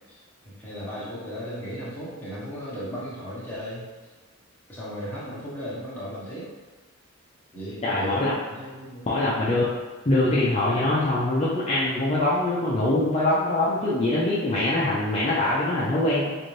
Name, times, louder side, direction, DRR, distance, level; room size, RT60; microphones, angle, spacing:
voice 1, 0.1-3.8 4.7-6.5 7.5-9.4, equal, 10° left, -9 dB, 1.0 m, -36 dB
voice 2, 7.8-8.3 9.1-9.7 10.1-16.4, left 2 dB, 30° left, -8 dB, 0.5 m, -23 dB
4.0 x 2.5 x 3.2 m, 1.3 s
head